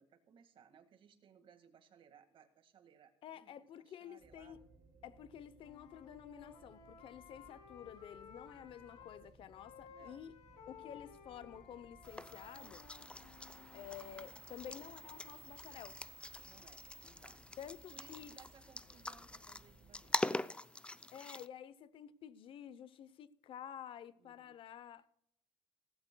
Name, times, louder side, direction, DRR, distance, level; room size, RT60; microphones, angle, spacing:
voice 1, 0.0-4.6 7.3-7.5 9.9-10.2 16.4-17.4 17.9-20.4 24.2-24.6, right 7 dB, 55° right, 1.9 m, -64 dB
voice 2, 3.2-4.6 5.0-10.3 10.7-12.9 13.7-16.0 17.6-18.4 21.1-25.1, left 9 dB, 55° left, 0.8 m, -51 dB
sound 1, 4.2-20.2, right 3 dB, 30° right, 4.0 m, -64 dB
Wind instrument woodwind instrument, 5.6-9.2 9.5-13.8, left 6 dB, 80° left, 2.6 m, -57 dB
sound 2, 12.0-21.5, left 2 dB, 10° left, 0.5 m, -44 dB
17.0 x 15.0 x 2.3 m
cardioid pair, 110°, 11 cm